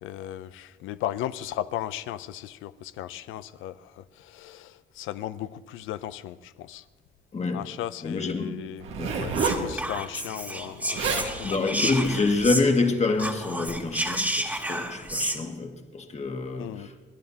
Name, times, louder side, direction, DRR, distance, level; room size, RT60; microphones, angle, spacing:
voice 1, 0.0-6.8 7.5-8.9 9.1-11.8 16.6-16.9, left 12 dB, 90° left, 0.5 m, -36 dB
voice 2, 7.3-7.7 8.0-8.6 9.0-9.2 11.0-17.0, left 3 dB, 35° left, 1.6 m, -27 dB
Zipper (clothing), 8.8-9.7 10.7-10.8 10.9-11.3 12.0-12.3, right 5 dB, 90° right, 1.7 m, -28 dB
Whispering, 9.3-12.9 13.1-15.4, right 1 dB, 10° right, 1.7 m, -31 dB
29.0 x 11.0 x 2.8 m
cardioid pair, 90°, 20 cm